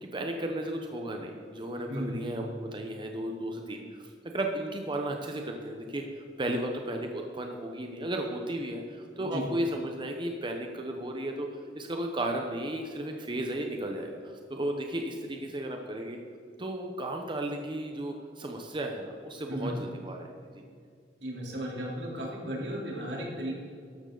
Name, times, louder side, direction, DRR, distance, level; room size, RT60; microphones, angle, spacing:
voice 1, 0.0-11.5 11.7-16.2 16.6-20.6, right 1 dB, 30° right, 2 dB, 0.9 m, -34 dB
voice 2, 1.9-2.3 9.2-9.4 19.5-19.7 21.2-23.5, equal, 85° right, -3 dB, 3.5 m, -35 dB
13.5 x 11.5 x 4.0 m, 2.3 s
head